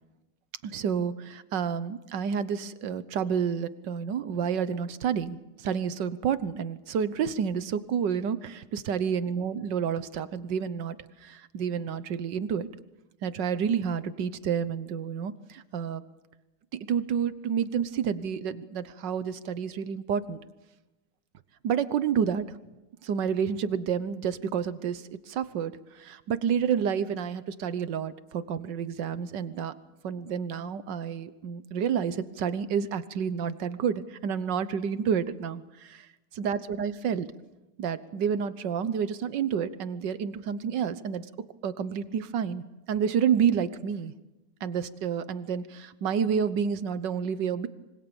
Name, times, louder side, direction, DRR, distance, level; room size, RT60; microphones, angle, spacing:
voice 1, 0.6-11.0 11.2-12.7 13.2-16.0 16.7-20.4 21.6-22.5 23.0-29.7 30.0-36.1 36.4-37.3 37.8-41.3 41.6-44.1 44.6-47.7, right 7 dB, 80° right, 14 dB, 1.7 m, -29 dB
26.0 x 24.5 x 7.1 m, 1.0 s
omnidirectional pair, 1.9 m